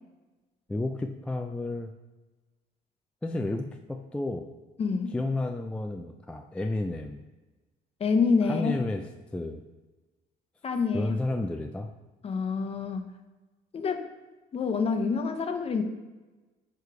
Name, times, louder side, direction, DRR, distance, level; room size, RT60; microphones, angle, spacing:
voice 1, 0.7-1.9 3.2-4.5 5.1-7.2 8.5-9.0 9.3-9.6 10.9-11.9, left 2 dB, 5° left, 4 dB, 0.3 m, -31 dB
voice 2, 4.8-5.1 8.0-8.7 10.6-11.1 12.2-13.0 13.7-14.1 14.5-15.8, left 5 dB, 35° left, 7 dB, 0.7 m, -27 dB
4.9 x 4.7 x 4.7 m, 1.2 s
cardioid pair, 110°, 17 cm